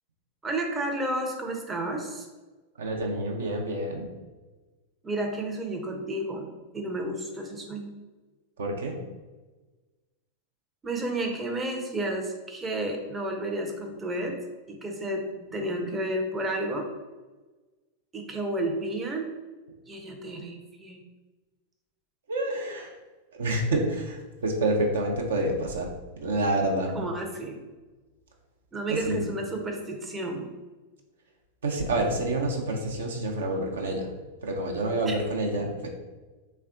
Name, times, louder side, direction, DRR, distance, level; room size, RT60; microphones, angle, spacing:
voice 1, 0.4-2.3 5.0-7.9 10.8-14.4 14.7-16.9 18.1-19.3 19.9-21.0 26.9-27.6 28.7-30.5 35.0-35.1, right 1 dB, 15° right, 1 dB, 0.5 m, -31 dB
voice 2, 2.8-4.0 8.6-9.0 22.3-22.9 23.3-25.9 26.2-26.9 28.9-29.2 31.6-34.1 34.4-35.9, right 1 dB, 65° right, 1 dB, 0.6 m, -28 dB
3.4 x 2.2 x 3.6 m, 1.2 s
figure-of-eight pair, 90°, 0 cm